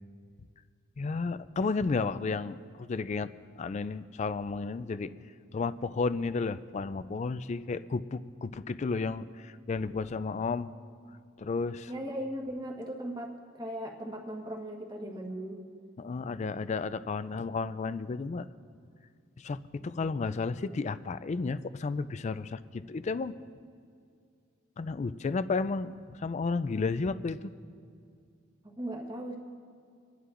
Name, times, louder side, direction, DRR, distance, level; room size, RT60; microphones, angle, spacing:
voice 1, 1.0-3.3 3.6-5.1 5.5-10.7 11.4-11.9 16.0-18.5 19.4-23.3 24.8-27.5, left 4 dB, 35° left, 14 dB, 0.3 m, -32 dB
voice 2, 11.9-15.6 20.0-20.1 28.6-29.4, right 1 dB, 20° right, 0 dB, 1.3 m, -38 dB
27.0 x 11.0 x 2.5 m, 2.3 s
head